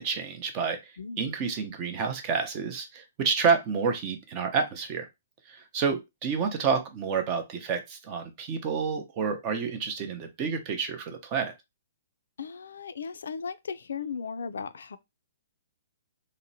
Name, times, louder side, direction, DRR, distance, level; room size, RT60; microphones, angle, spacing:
voice 1, 0.0-5.1 5.5-11.5, right 5 dB, 30° right, 0.5 m, -29 dB
voice 2, 1.0-1.3 12.4-15.0, left 6 dB, 85° left, 0.3 m, -36 dB
2.8 x 2.1 x 2.6 m
hypercardioid pair, 160°, 0 cm